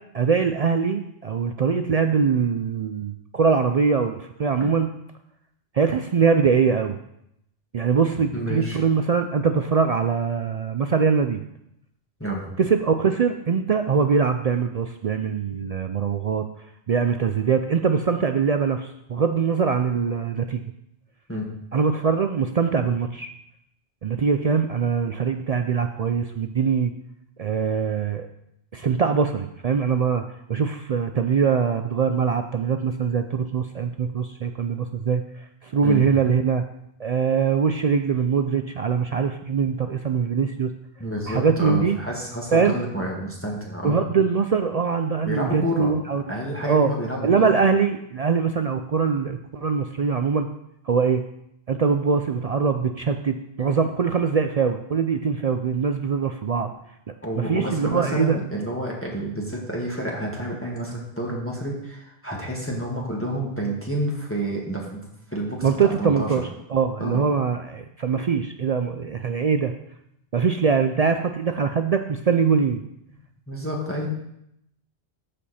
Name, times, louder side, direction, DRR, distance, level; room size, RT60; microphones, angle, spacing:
voice 1, 0.1-4.9 5.7-7.0 7.7-11.4 12.6-16.5 16.9-20.6 21.7-23.3 24.0-26.9 27.4-28.3 28.7-30.2 30.5-36.6 37.0-40.7 41.3-42.0 42.5-42.8 43.8-46.2 46.7-46.9 47.2-50.5 50.8-51.2 51.7-56.7 57.3-58.4 65.6-69.7 70.3-72.8, right 6 dB, 60° right, 7 dB, 0.4 m, -22 dB
voice 2, 8.3-8.8 12.2-12.4 15.5-15.6 21.3-21.5 35.8-36.0 41.0-44.0 45.2-47.5 57.2-65.0 65.3-66.4 67.0-67.2 73.5-74.1, right 1 dB, 10° left, -3 dB, 1.7 m, -29 dB
14.0 x 5.2 x 4.2 m, 0.78 s
omnidirectional pair, 1.1 m